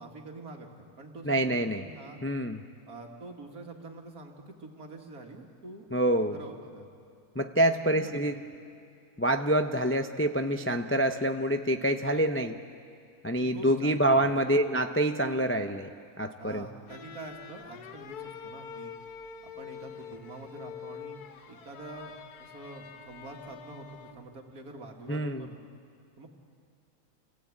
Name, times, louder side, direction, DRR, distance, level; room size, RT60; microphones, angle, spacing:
voice 1, 0.0-2.2 2.9-5.9 6.3-6.9 7.6-8.4 13.3-14.3 16.4-18.9 19.4-25.6 26.2-26.3, right 2 dB, 70° right, 2 dB, 2.5 m, -46 dB
voice 2, 1.3-1.8 2.2-2.6 5.9-6.4 7.4-8.3 9.2-12.6 13.2-15.9 16.2-16.7 25.1-25.5, right 1 dB, 20° left, 6 dB, 0.3 m, -26 dB
sound 1, 16.9-24.4, left 7 dB, 80° left, 1.4 m, -45 dB
28.5 x 17.5 x 8.6 m, 2.3 s
omnidirectional pair, 1.6 m